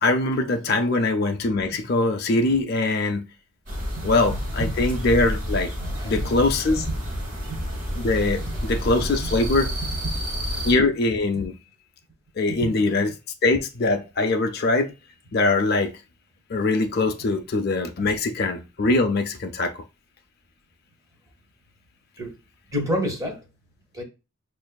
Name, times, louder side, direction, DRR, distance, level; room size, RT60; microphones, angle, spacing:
voice 1, 0.0-3.2 4.0-5.7 6.0-6.9 8.0-9.7 10.6-11.5 12.4-13.2 13.4-14.9 15.3-15.9 16.5-19.7, left 2 dB, 50° left, 0.4 m, -22 dB
sound 1, 3.7-10.7, equal, 40° right, 1.1 m, -29 dB
voice 2, 5.8-6.3 7.5-7.6 22.2-22.3 22.7-23.4 23.9-24.0, equal, 15° right, 0.8 m, -28 dB
6.0 x 2.5 x 2.2 m
head